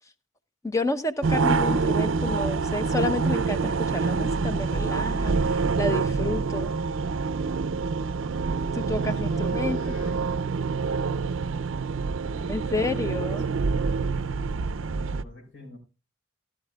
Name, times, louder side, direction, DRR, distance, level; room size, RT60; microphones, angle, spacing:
voice 1, 0.6-6.7 8.7-9.8 12.5-13.4, left 2 dB, 15° left, 10 dB, 0.7 m, -30 dB
sound 1, 1.2-15.2, right 4 dB, 70° right, 0.5 m, -26 dB
voice 2, 8.9-10.4 12.3-13.6 15.0-15.8, left 2 dB, 60° left, 2 dB, 4.9 m, -46 dB
17.5 x 12.0 x 2.3 m, 0.30 s
head